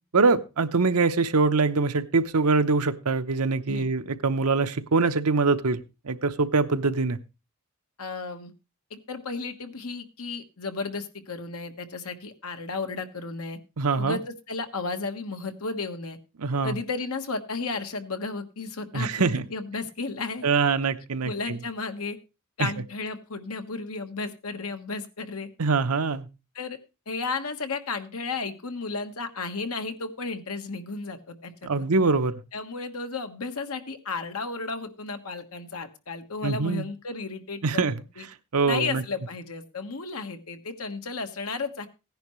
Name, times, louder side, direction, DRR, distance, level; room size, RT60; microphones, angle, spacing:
voice 1, 0.1-5.8 6.0-7.2 13.8-14.2 16.4-16.8 18.9-19.4 20.4-21.6 22.6-22.7 25.6-26.3 31.6-32.4 36.4-36.8 37.6-37.9 38.5-39.0, right 4 dB, 85° right, 10 dB, 0.9 m, -23 dB
voice 2, 8.0-8.5 8.9-13.6 14.0-16.2 16.6-20.5 21.2-22.2 22.6-25.5 26.5-26.8 27.1-31.9 32.5-37.8 38.2-38.3 38.7-41.9, left 4 dB, 80° left, 7 dB, 1.4 m, -33 dB
16.0 x 10.5 x 3.1 m, 0.29 s
head